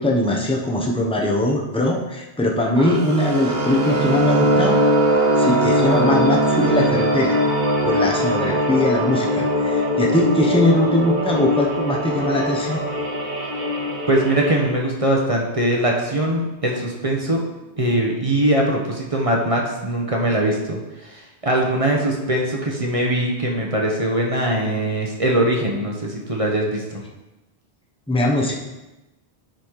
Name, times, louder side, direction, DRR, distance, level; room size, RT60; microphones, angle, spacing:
voice 1, 0.0-4.8 5.1-7.4 7.8-12.8 28.1-28.5, left 1 dB, 5° left, -1 dB, 1.0 m, -21 dB
sound 1, 2.8-14.7, equal, 50° right, 1.1 m, -21 dB
voice 2, 14.1-17.4 17.8-27.0, right 1 dB, 30° right, -1 dB, 1.2 m, -21 dB
10.5 x 4.2 x 4.8 m, 1.0 s
omnidirectional pair, 1.1 m